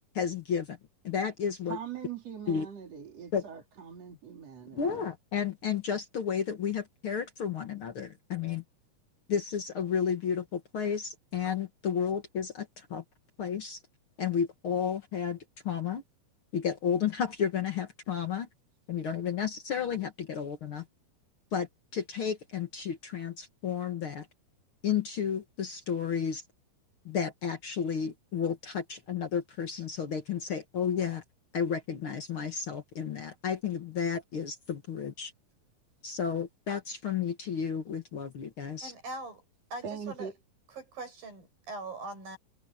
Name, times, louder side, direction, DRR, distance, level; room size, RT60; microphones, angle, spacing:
voice 1, 0.1-0.8 1.0-1.8 2.5-2.7 3.3-3.4 4.7-8.6 9.3-13.0 13.4-13.8 14.2-15.4 15.6-16.0 16.5-18.5 18.9-20.8 21.5-24.3 24.8-26.4 27.0-31.2 31.5-35.3 36.0-38.9, left 7 dB, 55° left, 1.6 m, -32 dB
voice 2, 1.7-5.0 39.8-40.4, right 7 dB, 45° right, 3.9 m, -41 dB
voice 3, 38.8-39.4 39.7-40.3 40.7-42.4, right 2 dB, 70° right, 9.9 m, -41 dB
omnidirectional pair, 4.2 m